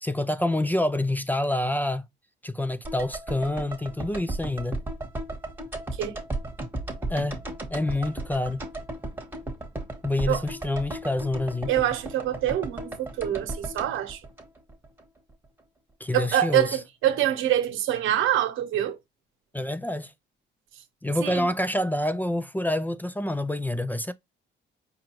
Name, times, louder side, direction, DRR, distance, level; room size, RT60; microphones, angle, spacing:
voice 1, 0.0-2.0 2.4-4.8 7.1-7.4 7.7-8.6 10.0-11.7 16.0-16.8 19.5-20.1 21.0-24.1, left 1 dB, 10° left, 0.3 m, -27 dB
sound 1, 2.8-15.0 15.3-15.4, right 2 dB, 10° right, 1.2 m, -35 dB
voice 2, 11.7-14.2 16.1-19.0 21.2-21.5, right 11 dB, 85° right, 0.9 m, -25 dB
5.0 x 2.3 x 3.0 m
cardioid pair, 90°, 20 cm